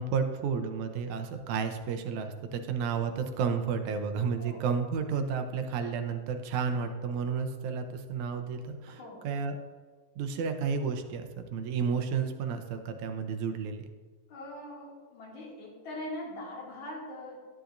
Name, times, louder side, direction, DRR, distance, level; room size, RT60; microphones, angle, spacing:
voice 1, 0.0-9.0 9.2-9.5 10.2-13.9, right 6 dB, 80° right, 6 dB, 2.1 m, -31 dB
voice 2, 8.9-9.3 14.3-17.4, left 1 dB, 75° left, -3 dB, 3.3 m, -42 dB
11.5 x 10.5 x 2.6 m, 1.5 s
omnidirectional pair, 3.4 m